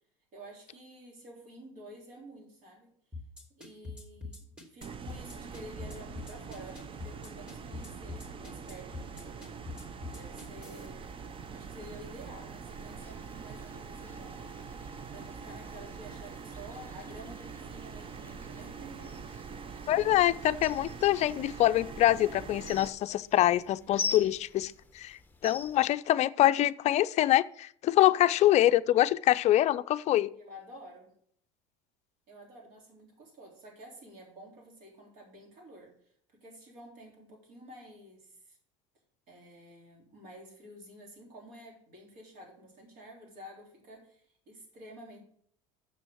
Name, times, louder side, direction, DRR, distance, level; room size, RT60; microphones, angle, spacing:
voice 1, 0.3-2.9 3.5-9.5 10.1-11.2 11.5-14.5 15.1-19.2 30.3-31.1 32.3-38.6 39.3-45.2, equal, 55° right, 0 dB, 3.6 m, -50 dB
sound 1, 3.1-10.9, left 3 dB, 5° right, 2.6 m, -43 dB
sound 2, 4.8-22.9, right 5 dB, 35° right, 0.7 m, -44 dB
sound 3, 12.7-25.9, left 5 dB, 10° left, 0.9 m, -45 dB
voice 2, 19.9-30.3, left 14 dB, 45° left, 13 dB, 0.5 m, -25 dB
7.0 x 6.2 x 6.2 m, 0.62 s
supercardioid pair, 95°, 16 cm